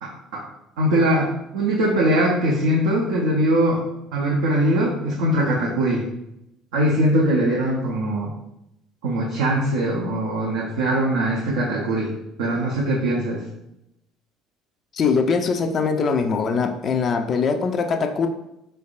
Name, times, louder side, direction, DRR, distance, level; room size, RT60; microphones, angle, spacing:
voice 1, 0.0-0.4 0.8-3.8 4.1-6.1 6.7-8.3 9.0-12.1 12.4-13.4, right 1 dB, 70° right, -5 dB, 0.6 m, -21 dB
voice 2, 14.9-18.3, left 5 dB, 45° left, 6 dB, 0.4 m, -22 dB
4.0 x 3.3 x 2.3 m, 0.84 s
figure-of-eight pair, 60°, 0 cm